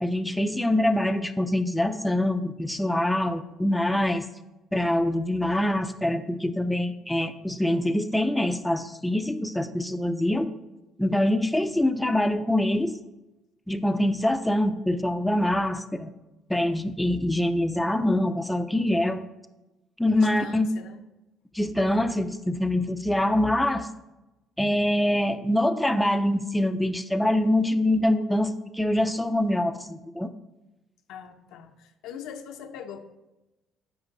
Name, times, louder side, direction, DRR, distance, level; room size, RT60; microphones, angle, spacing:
voice 1, 0.0-4.3 4.7-10.5 11.0-13.0 13.7-16.1 16.5-19.3 20.0-20.7 21.5-23.9 24.6-30.3, left 1 dB, 5° left, 7 dB, 0.5 m, -24 dB
voice 2, 20.1-21.0 31.1-33.0, left 8 dB, 80° left, 6 dB, 0.7 m, -42 dB
9.0 x 5.4 x 3.9 m, 1.0 s
supercardioid pair, 85°, 0 cm